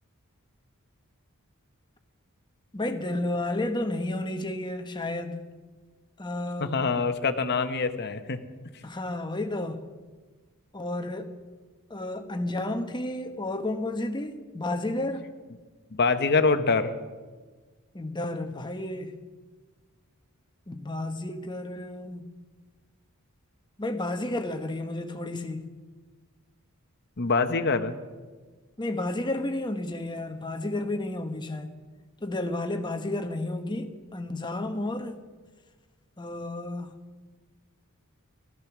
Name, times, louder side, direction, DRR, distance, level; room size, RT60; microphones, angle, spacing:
voice 1, 2.7-5.4 6.2-6.8 8.8-9.8 10.7-11.3 11.9-15.3 17.9-19.2 20.7-22.3 23.8-25.7 28.8-31.8 32.2-35.2 36.2-36.9, left 1 dB, 20° left, 1.1 m, -32 dB
voice 2, 6.6-8.4 15.9-16.9 27.2-27.9, left 4 dB, 50° left, 1.0 m, -24 dB
16.5 x 14.0 x 6.0 m
head